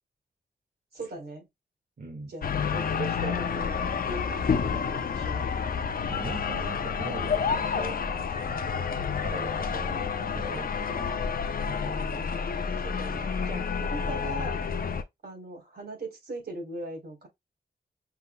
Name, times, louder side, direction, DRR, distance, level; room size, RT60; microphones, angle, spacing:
voice 1, 0.9-1.5 2.3-3.8 4.1-5.4 9.0-9.2 12.8-14.6 15.2-17.3, right 2 dB, 70° right, 3.5 m, -39 dB
voice 2, 2.0-2.3 6.1-8.0 9.2-11.2 11.7-12.3 13.9-14.3, right 3 dB, 55° right, 1.2 m, -41 dB
sound 1, 2.4-15.0, left 6 dB, 60° left, 0.6 m, -29 dB
5.8 x 3.6 x 2.2 m
wide cardioid pair, 130°, 17 cm